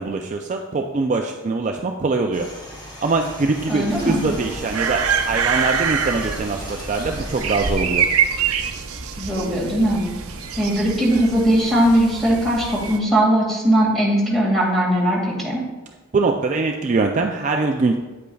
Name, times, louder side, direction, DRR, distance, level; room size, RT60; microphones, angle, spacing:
voice 1, 0.0-2.5 3.0-8.1 16.1-18.0, right 3 dB, 35° right, 2 dB, 0.3 m, -23 dB
sound 1, 2.3-7.8, equal, 20° left, 1.3 m, -38 dB
voice 2, 3.7-4.2 9.2-10.1 10.6-15.6, right 1 dB, ahead, -4 dB, 2.0 m, -19 dB
sound 2, 3.9-13.0, right 6 dB, 90° right, 0.7 m, -25 dB
8.8 x 8.3 x 2.3 m, 1.2 s
head